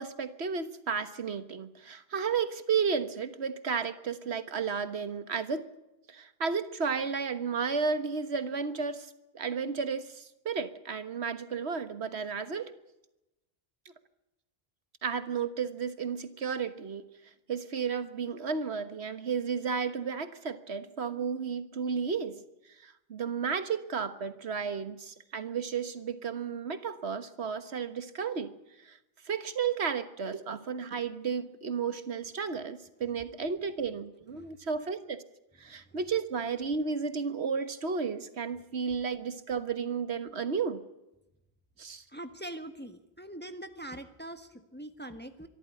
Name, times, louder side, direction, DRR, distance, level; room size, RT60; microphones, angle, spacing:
voice 1, 0.0-5.7 6.1-12.7 13.8-13.9 15.0-17.0 17.5-22.4 22.8-28.5 28.8-29.0 29.2-35.2 35.6-40.8 41.8-42.0, right 6 dB, 90° right, 11 dB, 1.6 m, -33 dB
voice 2, 42.1-45.5, right 1 dB, 10° left, 8 dB, 1.3 m, -43 dB
24.0 x 13.5 x 9.8 m, 0.95 s
omnidirectional pair, 1.1 m